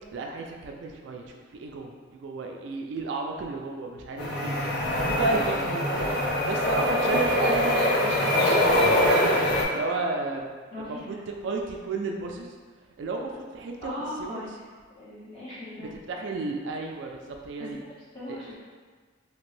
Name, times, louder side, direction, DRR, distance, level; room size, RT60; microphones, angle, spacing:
voice 1, 0.1-6.1 6.5-9.2 9.7-10.5 10.8-12.6 13.0-13.9 14.2-14.5 15.8-17.8 18.3-18.4, right 3 dB, 60° right, 1 dB, 0.3 m, -33 dB
sound 1, 4.2-9.6, left 1 dB, 50° left, 0.5 m, -23 dB
voice 2, 10.7-11.2 13.8-14.5 15.0-15.9 18.1-18.5, left 1 dB, 25° left, -12 dB, 1.3 m, -38 dB
2.8 x 2.6 x 3.2 m, 1.5 s
head